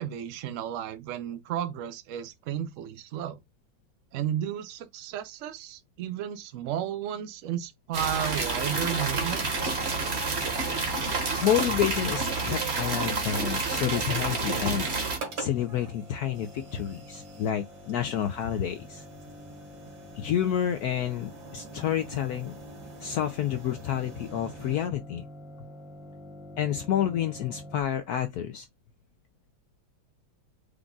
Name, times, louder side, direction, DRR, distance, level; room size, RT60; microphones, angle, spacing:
voice 1, 0.0-3.4 4.1-9.7, right 10 dB, 80° right, 0.7 m, -33 dB
sound 1, 7.9-15.2, right 4 dB, 40° right, 1.2 m, -29 dB
sound 2, 8.4-27.8, left 1 dB, 5° right, 0.5 m, -47 dB
voice 2, 11.4-14.9 15.4-19.0 20.2-22.5 23.0-25.2 26.6-28.7, left 10 dB, 80° left, 0.8 m, -29 dB
sound 3, 13.1-24.9, right 4 dB, 60° right, 1.9 m, -47 dB
5.0 x 2.3 x 3.7 m
omnidirectional pair, 2.1 m